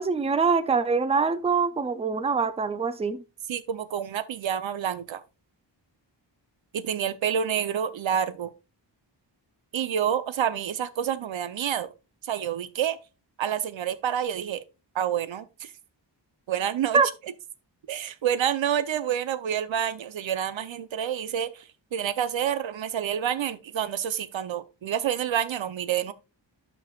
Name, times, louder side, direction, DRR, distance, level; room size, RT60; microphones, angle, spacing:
voice 1, 0.0-3.2 16.9-17.1, right 5 dB, 15° right, 0.4 m, -24 dB
voice 2, 3.5-5.2 6.7-8.5 9.7-11.9 12.3-13.0 13.4-14.6 14.9-15.7 16.5-17.0 17.9-21.6 21.9-26.1, right 9 dB, 85° right, 0.7 m, -28 dB
12.5 x 5.5 x 2.3 m
wide cardioid pair, 170°, 45 cm